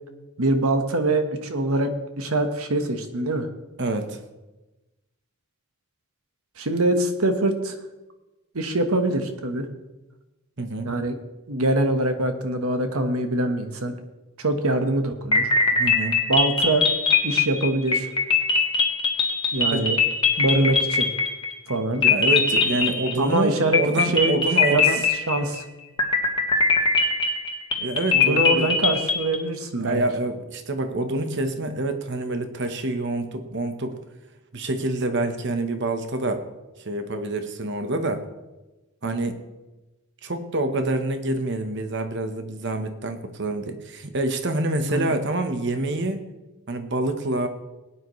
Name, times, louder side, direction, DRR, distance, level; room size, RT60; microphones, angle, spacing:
voice 1, 0.4-3.5 6.6-7.8 8.5-9.7 10.8-11.1 11.5-13.9 14.4-15.5 16.3-16.9 17.2-18.1 19.5-20.0 20.4-21.1 21.7-22.0 23.2-23.8 24.1-24.4 24.7-24.8 25.3-25.6 28.1-30.0 44.9-45.1, right 2 dB, 75° right, 6 dB, 1.3 m, -23 dB
voice 2, 3.8-4.2 10.6-10.9 15.8-16.2 19.7-19.8 21.9-25.0 27.8-28.7 29.8-34.0 34.5-36.5 36.8-38.3 39.0-39.4 40.2-46.2 46.7-47.5, right 2 dB, 50° right, 8 dB, 1.1 m, -27 dB
sound 1, 15.3-21.7 22.0-23.4 23.7-25.6 26.0-29.4, left 4 dB, 25° left, 1.5 m, -21 dB
19.0 x 9.5 x 3.2 m, 1.1 s
head